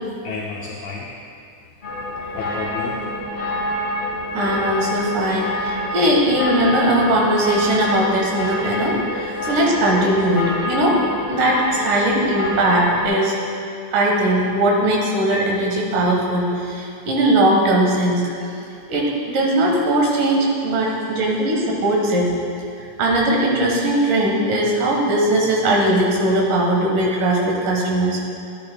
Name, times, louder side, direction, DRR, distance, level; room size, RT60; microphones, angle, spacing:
voice 1, 0.2-1.1 2.3-3.5 9.3-9.4 20.8-21.4 21.9-22.0 22.8-22.9, left 4 dB, 75° left, -4 dB, 2.0 m, -33 dB
sound 1, 1.8-13.1, left 1 dB, 20° left, 1.2 m, -27 dB
voice 2, 4.3-11.0 11.3-13.3 13.9-18.2 18.9-22.3 23.0-28.3, right 1 dB, 75° right, -1 dB, 2.9 m, -19 dB
12.0 x 10.5 x 2.2 m, 2.6 s
omnidirectional pair, 3.8 m